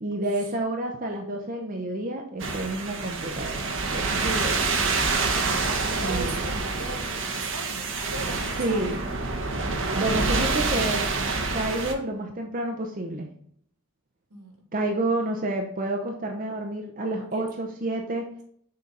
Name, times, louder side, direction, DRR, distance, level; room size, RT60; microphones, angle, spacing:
voice 1, 0.0-4.8 6.0-6.3 8.6-9.0 9.9-11.1 11.5-13.3 14.7-18.3, right 1 dB, 40° right, 1 dB, 0.7 m, -29 dB
sound 1, 2.4-11.9, right 3 dB, 55° right, 1.0 m, -27 dB
voice 2, 5.4-9.0 14.3-14.6 17.3-17.4, right 2 dB, 85° right, 0 dB, 2.3 m, -39 dB
6.7 x 3.9 x 5.4 m, 0.64 s
head